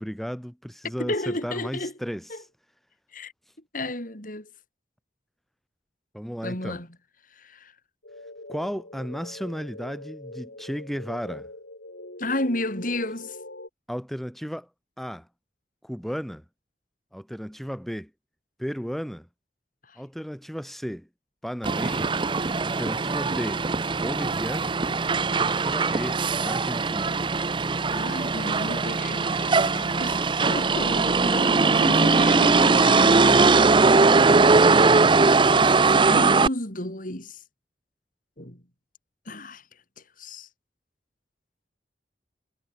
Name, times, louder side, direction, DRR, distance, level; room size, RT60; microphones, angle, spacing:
voice 1, 0.0-2.2 6.1-6.8 8.5-11.5 13.9-14.7 15.0-15.3 15.8-16.4 17.1-18.1 18.6-19.3 20.0-21.1 21.4-22.1 22.6-23.6 23.9-24.8 25.2-27.2, equal, ahead, 3.9 m, -34 dB
voice 2, 0.8-1.9 2.3-2.4 3.1-3.3 3.7-4.5 6.4-6.9 7.3-7.7 12.2-13.4 19.9-20.0 27.9-35.4 36.0-37.4 38.4-38.6 39.2-39.6 40.0-40.5, left 1 dB, 50° left, 6.7 m, -33 dB
sound 1, 8.0-13.7, left 2 dB, 75° left, 4.9 m, -42 dB
Motor vehicle (road), 21.6-36.5, right 4 dB, 25° right, 0.6 m, -20 dB
head